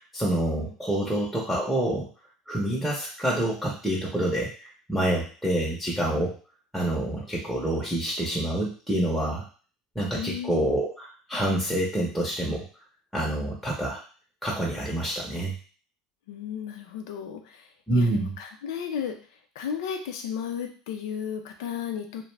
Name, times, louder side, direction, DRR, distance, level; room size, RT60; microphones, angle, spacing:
voice 1, 0.1-2.1 2.5-6.4 6.7-9.4 10.0-12.6 13.1-14.0 14.4-15.5 17.9-18.3, right 1 dB, ahead, -4 dB, 0.7 m, -27 dB
voice 2, 0.7-1.1 10.1-10.7 16.3-17.7 18.0-19.2 19.5-22.3, left 8 dB, 85° left, 4 dB, 0.5 m, -34 dB
2.5 x 2.1 x 3.2 m, 0.39 s
supercardioid pair, 100°, 2 cm